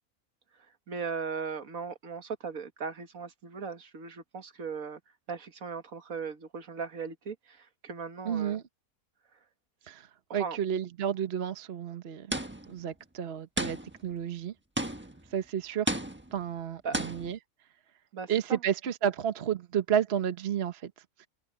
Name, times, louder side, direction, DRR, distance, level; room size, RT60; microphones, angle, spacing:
voice 1, 0.5-5.0 5.3-8.6 10.3-10.6 16.8-17.0 18.1-18.6, right 5 dB, 75° right, 1.9 m, -38 dB
voice 2, 8.2-8.6 9.9-12.3 12.7-14.5 15.3-15.9 16.3-17.4 18.3-20.9 21.2-21.3, right 9 dB, 50° right, 1.2 m, -31 dB
sound 1, 12.3-12.8 13.6-14.1 14.8-15.3 15.9-16.4 16.9-17.4, right 1 dB, 10° right, 1.2 m, -33 dB
omnidirectional pair, 1.5 m